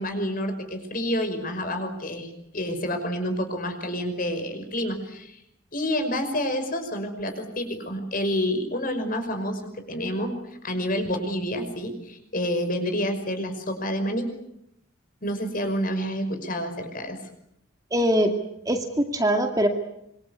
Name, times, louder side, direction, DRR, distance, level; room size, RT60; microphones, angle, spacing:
voice 1, 0.0-5.4 5.7-10.4 10.6-14.3 15.2-17.2, equal, 40° left, 7 dB, 5.5 m, -28 dB
voice 2, 17.9-18.3 18.7-19.7, equal, 20° right, 4 dB, 2.2 m, -22 dB
26.0 x 24.5 x 8.3 m, 0.79 s
head